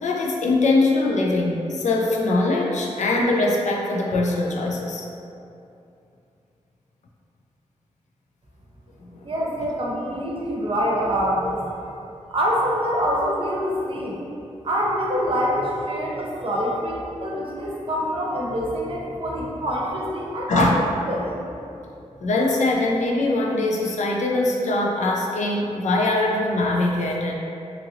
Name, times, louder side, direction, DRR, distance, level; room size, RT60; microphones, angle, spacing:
voice 1, 0.0-5.1 9.1-9.3 20.5-20.8 22.2-27.3, left 2 dB, 75° left, -1 dB, 0.4 m, -22 dB
voice 2, 9.2-11.9 12.3-14.2 14.6-20.7 21.1-21.3, equal, 45° right, -4 dB, 0.6 m, -25 dB
2.9 x 2.6 x 2.7 m, 2.6 s
cardioid pair, 65°, 12 cm